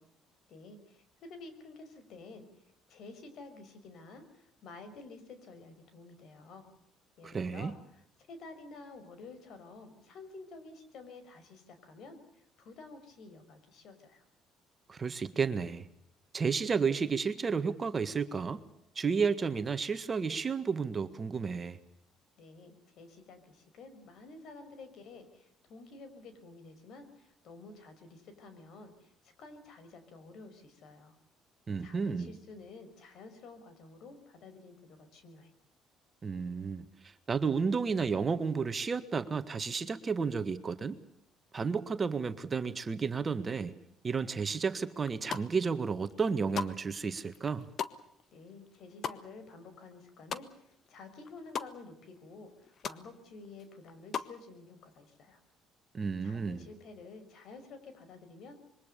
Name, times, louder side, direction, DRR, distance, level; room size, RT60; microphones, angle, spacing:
voice 1, 0.5-2.5 2.9-6.7 7.2-8.0 8.3-14.2 22.4-31.2 31.8-35.5 48.3-55.4 56.2-58.5, left 3 dB, 65° left, 10 dB, 5.7 m, -51 dB
voice 2, 7.2-7.7 14.9-15.9 16.3-18.6 19.0-21.8 31.7-32.3 36.2-41.0 41.5-43.8 44.0-47.7 55.9-56.6, right 5 dB, 30° right, 10 dB, 1.8 m, -32 dB
sound 1, 45.1-45.7 46.1-50.9 51.1-51.7 52.1-52.2 52.4-53.0 53.4-54.4, left 7 dB, 50° left, 1.5 m, -39 dB
26.0 x 23.0 x 6.9 m, 0.75 s
cardioid pair, 95°, 0 cm